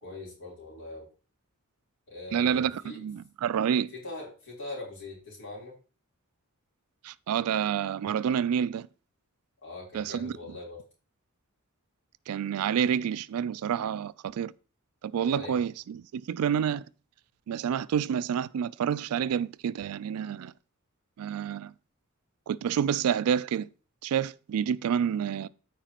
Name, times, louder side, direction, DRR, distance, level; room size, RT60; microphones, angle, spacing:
voice 1, 0.0-1.1 2.1-3.0 4.0-5.8 9.6-10.8 15.3-15.6, left 2 dB, 60° left, 3.6 m, -41 dB
voice 2, 2.3-3.9 7.0-8.9 9.9-10.3 12.3-14.5 15.0-16.8 17.5-20.5 21.2-21.7 22.5-23.7 24.0-25.5, right 8 dB, 75° right, 0.3 m, -28 dB
14.0 x 4.8 x 2.9 m
head